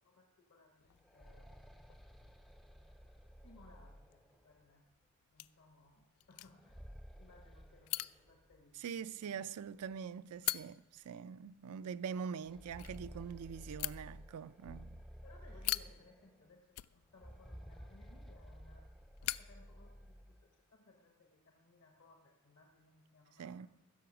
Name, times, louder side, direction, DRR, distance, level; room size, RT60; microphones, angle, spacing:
voice 1, 0.0-2.0 2.8-4.9 5.3-9.5 15.0-18.9 19.2-23.7, left 3 dB, 60° left, 1.1 m, -64 dB
sound 1, 0.8-20.4, left 16 dB, 80° left, 0.3 m, -47 dB
sound 2, 0.9-4.7 6.4-8.6 8.9-9.0 9.9-10.0 10.5-10.6 12.3-16.4 17.1-20.5, equal, ahead, 0.4 m, -54 dB
voice 2, 8.8-15.0 23.4-23.7, right 7 dB, 80° right, 0.4 m, -44 dB
15.0 x 6.9 x 6.0 m
head